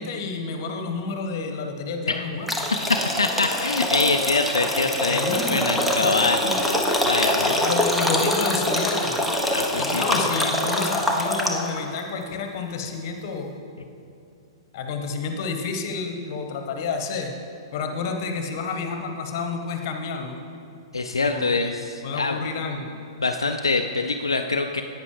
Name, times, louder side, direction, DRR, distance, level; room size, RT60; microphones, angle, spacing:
voice 1, 0.0-2.5 4.9-6.6 7.4-9.3 9.8-13.5 14.7-17.3 17.7-20.4 21.2-21.7 22.0-22.9, left 4 dB, 50° left, 4 dB, 1.1 m, -30 dB
sound 1, 2.5-11.8, left 1 dB, ahead, 0.9 m, -24 dB
voice 2, 2.9-6.4 7.0-7.7 9.5-10.0 20.9-22.4 23.2-24.8, left 3 dB, 80° left, 5 dB, 0.4 m, -24 dB
11.0 x 8.9 x 3.2 m, 2.5 s
figure-of-eight pair, 110°, 2 cm